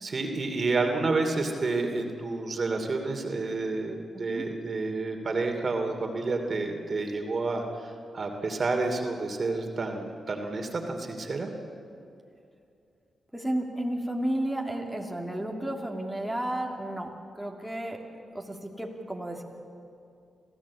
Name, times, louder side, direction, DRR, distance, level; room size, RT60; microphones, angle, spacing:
voice 1, 0.0-11.5, right 3 dB, 50° right, 4 dB, 2.7 m, -30 dB
voice 2, 4.1-4.4 13.3-19.4, right 1 dB, 5° right, 0 dB, 2.7 m, -33 dB
26.0 x 15.5 x 8.5 m, 2.5 s
cardioid pair, 70°, 0 cm